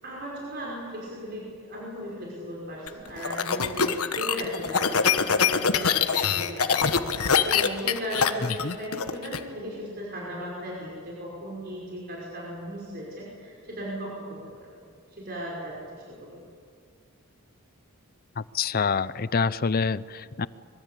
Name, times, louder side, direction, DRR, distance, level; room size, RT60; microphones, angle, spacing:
voice 1, 0.0-14.7 15.1-16.4, equal, 45° right, -4 dB, 5.5 m, -37 dB
sound 1, 2.9-9.4, left 6 dB, 80° left, 1.2 m, -24 dB
voice 2, 18.4-20.5, left 5 dB, 40° left, 17 dB, 0.6 m, -26 dB
24.0 x 22.5 x 8.4 m, 2.2 s
head